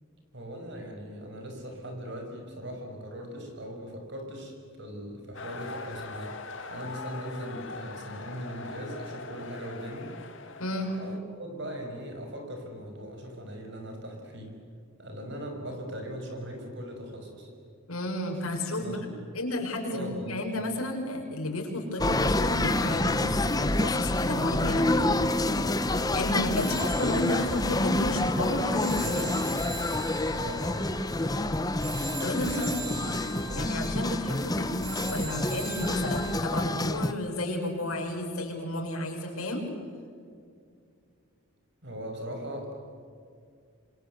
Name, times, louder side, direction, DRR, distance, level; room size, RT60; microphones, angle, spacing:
voice 1, 0.3-6.4 6.7-10.1 11.0-14.6 15.0-17.5 18.8-19.2 19.9-20.4 30.3-31.1 32.7-33.7 41.8-42.7, equal, 55° right, 4 dB, 5.9 m, -39 dB
sound 1, 5.3-11.2, left 3 dB, 60° left, 2.3 m, -42 dB
voice 2, 10.6-10.9 17.9-19.0 19.3-24.9 26.1-29.4 32.2-33.0 33.5-34.8 35.1-39.6, left 1 dB, 80° left, 2 dB, 6.2 m, -32 dB
sound 2, 22.0-37.1, left 2 dB, 15° left, 0.9 m, -28 dB
Telephone, 26.5-36.3, right 2 dB, 25° right, 7.8 m, -41 dB
27.5 x 26.0 x 8.0 m, 2.3 s
head